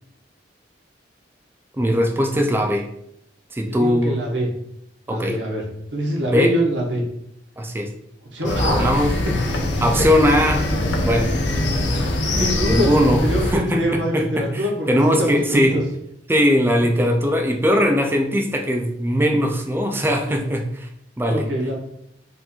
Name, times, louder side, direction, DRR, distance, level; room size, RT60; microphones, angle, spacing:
voice 1, 1.8-2.9 3.5-4.2 5.1-5.4 6.2-6.5 7.6-7.9 8.4-9.1 9.8-10.7 11.0-15.8 16.3-20.9 21.2-21.5, equal, 10° right, 4 dB, 0.4 m, -20 dB
voice 2, 3.7-4.5 5.1-5.7 5.9-7.0 8.3-9.2 12.1-12.9 13.2-15.8 17.0-17.1 20.3-20.5 21.3-21.7, equal, 80° right, -1 dB, 1.2 m, -24 dB
sound 1, 8.4-13.5, left 1 dB, 75° left, 0.7 m, -22 dB
4.4 x 2.6 x 4.3 m, 0.74 s
head